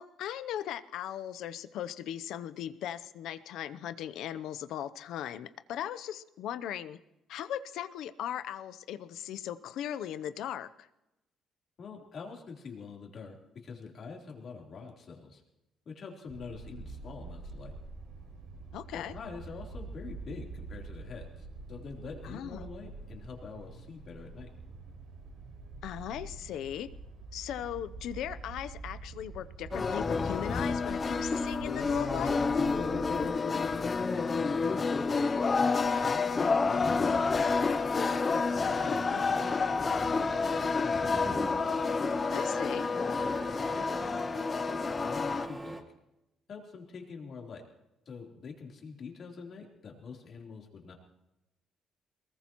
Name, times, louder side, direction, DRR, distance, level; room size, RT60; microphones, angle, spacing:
voice 1, 0.0-7.0 7.3-10.9 18.7-19.1 22.2-22.7 25.8-26.9 27.3-32.4 38.9-39.3 42.3-42.9, left 10 dB, 80° left, 13 dB, 0.7 m, -38 dB
voice 2, 11.8-15.4 15.9-17.7 18.9-24.5 33.1-41.5 43.0-45.8 46.5-47.6 48.1-50.9, left 5 dB, 45° left, -1 dB, 3.6 m, -46 dB
sound 1, 16.3-33.3, right 3 dB, 80° right, 5.1 m, -46 dB
sound 2, 29.7-45.5, left 4 dB, 30° left, 0.6 m, -29 dB
Printer, 36.8-45.8, right 1 dB, 15° right, 1.4 m, -42 dB
23.0 x 20.5 x 3.1 m, 0.92 s
cardioid pair, 135°, 0 cm